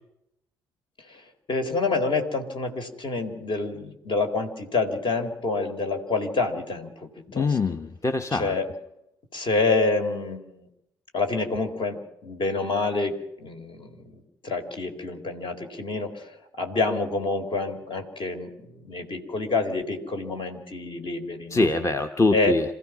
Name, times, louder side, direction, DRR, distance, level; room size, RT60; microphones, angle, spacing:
voice 1, 1.5-7.6 8.3-8.7 9.3-10.7 11.1-21.7 22.3-22.6, left 3 dB, 45° left, 5 dB, 3.9 m, -28 dB
voice 2, 7.3-8.5 21.5-22.6, left 3 dB, 25° left, 8 dB, 1.2 m, -23 dB
27.0 x 15.5 x 6.1 m, 0.82 s
hypercardioid pair, 50°, 12 cm